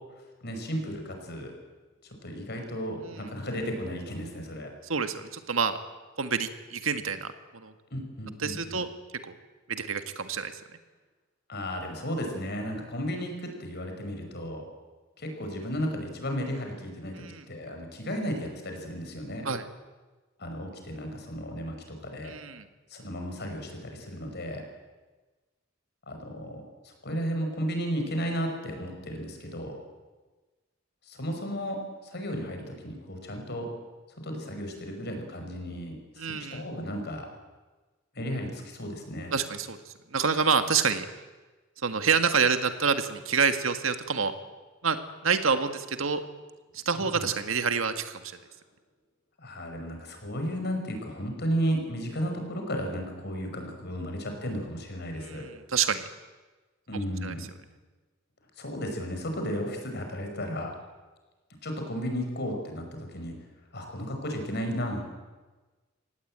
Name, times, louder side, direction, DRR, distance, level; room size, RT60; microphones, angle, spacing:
voice 1, 0.4-1.5 2.2-4.7 7.9-8.8 11.5-14.6 15.2-19.5 20.4-22.3 22.9-24.6 26.1-29.8 31.1-33.7 34.2-37.3 38.2-39.3 46.9-47.3 49.4-55.5 56.9-57.5 58.6-60.7 61.6-63.3 63.7-65.0, equal, 55° left, 4 dB, 5.6 m, -34 dB
voice 2, 4.9-5.8 6.2-7.3 7.5-7.7 8.4-8.9 9.2-9.3 9.7-10.5 17.2-17.4 19.5-19.6 22.2-22.7 36.2-36.6 39.3-39.8 40.1-41.1 41.8-44.3 44.8-45.0 45.2-46.2 46.7-48.2 55.1-56.0 57.2-57.4, right 5 dB, 80° right, 8 dB, 1.8 m, -27 dB
24.5 x 18.0 x 8.9 m, 1.3 s
head